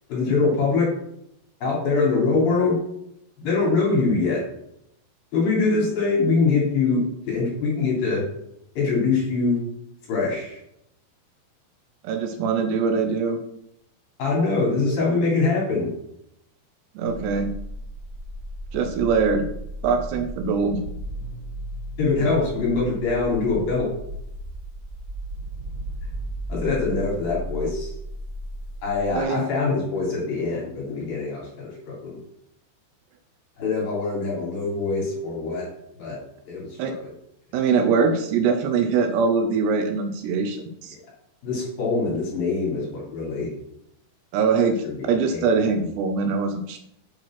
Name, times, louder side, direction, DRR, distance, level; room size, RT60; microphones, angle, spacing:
voice 1, 0.1-0.9 1.6-2.8 3.4-4.4 5.3-8.2 8.7-9.6 10.1-10.6 14.2-15.9 22.0-23.9 26.5-27.9 28.8-32.2 33.6-35.7 36.0-36.2 36.5-36.9 41.4-43.5 44.8-45.9, left 4 dB, 50° left, -4 dB, 4.8 m, -23 dB
voice 2, 12.0-13.4 17.0-17.5 18.7-19.5 19.8-20.8 29.2-29.5 36.8-36.9 37.5-41.0 44.3-46.8, right 5 dB, 80° right, 6 dB, 2.6 m, -23 dB
sound 1, 17.1-29.2, equal, 20° right, 3.1 m, -35 dB
8.8 x 5.2 x 5.9 m, 0.77 s
omnidirectional pair, 5.5 m